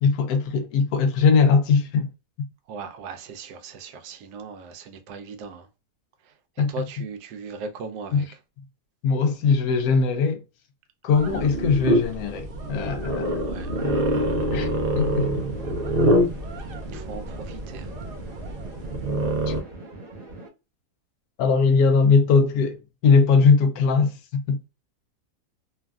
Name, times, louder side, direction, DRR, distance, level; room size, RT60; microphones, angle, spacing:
voice 1, 0.0-2.1 6.6-6.7 8.1-8.2 9.0-10.4 11.0-13.3 13.8-14.0 14.5-14.7 15.0-15.3 19.5-19.6 21.4-24.2 24.5-24.7, left 5 dB, 75° left, 1.0 m, -20 dB
voice 2, 2.7-5.7 6.2-8.4 13.4-13.7 16.8-18.0, right 4 dB, 90° right, 1.2 m, -38 dB
sound 1, 11.1-19.6, equal, 60° right, 0.5 m, -26 dB
sound 2, 14.1-20.5, right 2 dB, 35° right, 0.9 m, -42 dB
3.1 x 2.4 x 2.2 m
omnidirectional pair, 1.7 m